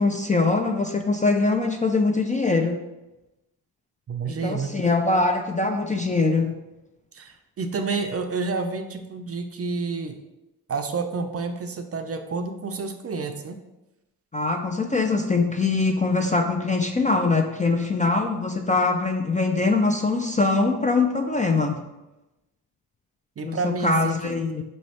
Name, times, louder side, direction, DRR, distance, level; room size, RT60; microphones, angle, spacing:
voice 1, 0.0-2.8 4.3-6.6 14.3-21.8 23.4-24.6, left 3 dB, 20° left, 3 dB, 0.3 m, -23 dB
voice 2, 4.1-4.7 7.1-10.2 10.7-13.5 23.4-24.3, right 4 dB, 35° right, 6 dB, 0.5 m, -29 dB
5.2 x 3.1 x 2.8 m, 0.99 s
cardioid pair, 60°, 39 cm